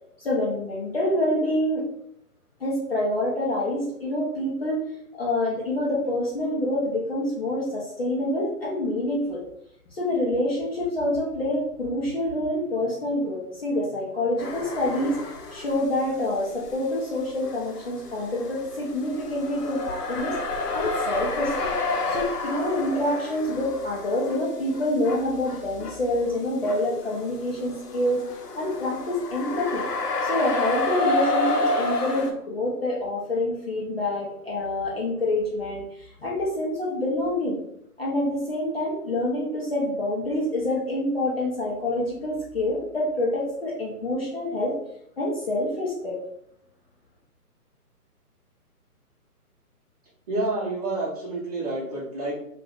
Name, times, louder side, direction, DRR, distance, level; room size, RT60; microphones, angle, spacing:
voice 1, 0.2-1.8 2.6-4.8 5.2-9.4 9.9-15.2 15.5-20.4 20.7-21.7 22.1-29.8 30.2-37.6 38.0-44.7 45.2-46.2, left 1 dB, 40° left, -4 dB, 0.6 m, -27 dB
sound 1, 14.4-15.9 16.2-32.3, left 2 dB, 80° left, 0.8 m, -30 dB
voice 2, 50.3-52.3, right 2 dB, 25° right, -5 dB, 0.9 m, -28 dB
2.5 x 2.4 x 3.5 m, 0.74 s
hypercardioid pair, 155°, 46 cm